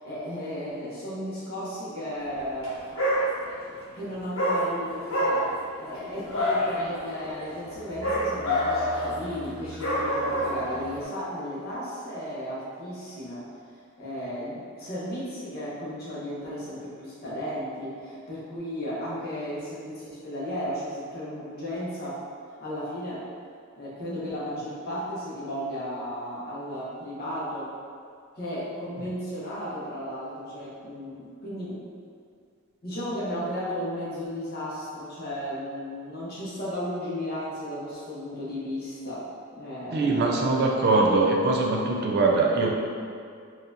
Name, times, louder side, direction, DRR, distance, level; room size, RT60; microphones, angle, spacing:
voice 1, 0.0-2.8 3.9-13.4 14.0-22.2 22.6-23.2 23.8-27.7 28.3-31.8 32.8-39.2 39.6-40.4, equal, 50° left, -8 dB, 0.9 m, -34 dB
Dog, 2.5-2.7 2.9-3.7 4.3-11.0, equal, 75° left, 1.0 m, -28 dB
voice 2, 39.9-42.7, right 3 dB, 55° right, 0 dB, 0.4 m, -22 dB
4.1 x 2.4 x 2.6 m, 2.2 s
head